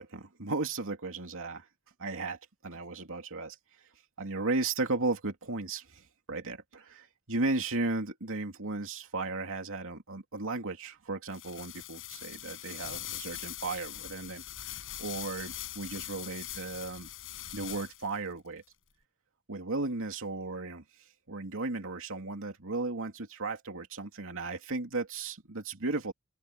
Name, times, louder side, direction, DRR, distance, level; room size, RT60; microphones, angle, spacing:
voice 1, 0.0-1.7 2.0-3.6 4.2-14.7 15.0-17.1 17.5-18.6 19.5-20.8 21.3-26.1, right 3 dB, 65° right, 2.8 m, -35 dB
sound 1, 11.3-18.2, left 13 dB, 65° left, 5.6 m, -42 dB
open air
head